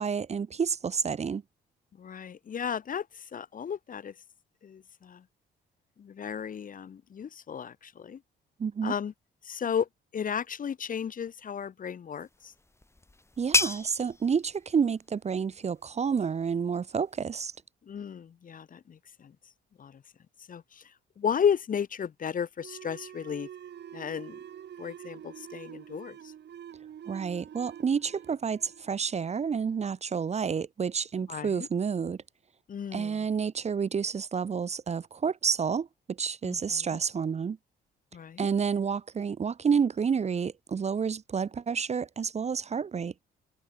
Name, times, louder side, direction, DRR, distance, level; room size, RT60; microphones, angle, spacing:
voice 1, 0.0-1.4 8.6-8.9 13.4-17.5 27.1-32.2 32.9-37.6 38.4-43.1, right 6 dB, 35° right, 0.7 m, -29 dB
voice 2, 2.0-3.1 3.3-4.1 4.6-5.2 6.0-8.2 8.8-9.1 9.4-9.9 10.1-12.5 17.9-19.3 19.8-20.0 20.5-20.8 21.2-23.5 23.9-24.4 24.8-26.3 31.3-31.7 32.7-33.2 36.4-36.9 38.1-38.5, left 7 dB, 45° left, 1.0 m, -34 dB
sound 1, 12.2-17.6, left 2 dB, 15° left, 2.8 m, -34 dB
sound 2, 22.6-29.8, right 9 dB, 60° right, 2.0 m, -46 dB
cardioid pair, 90°, 20 cm